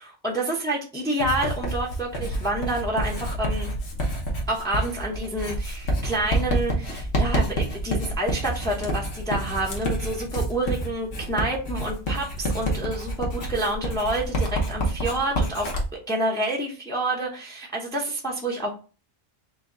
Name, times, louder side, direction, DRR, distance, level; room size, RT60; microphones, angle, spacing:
voice 1, 0.0-3.7 4.5-15.8 16.1-18.7, right 1 dB, 5° left, -1 dB, 0.8 m, -28 dB
Writing, 1.2-15.9, right 1 dB, 70° left, 1.4 m, -28 dB
5.0 x 2.3 x 3.9 m, 0.35 s
omnidirectional pair, 1.2 m